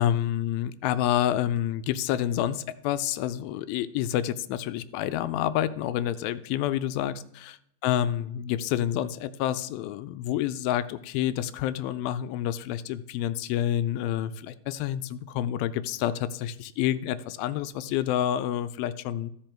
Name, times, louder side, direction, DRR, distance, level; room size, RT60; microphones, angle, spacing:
voice 1, 0.0-19.3, left 11 dB, 80° left, 14 dB, 2.2 m, -28 dB
15.5 x 5.3 x 4.4 m, 0.74 s
omnidirectional pair, 4.3 m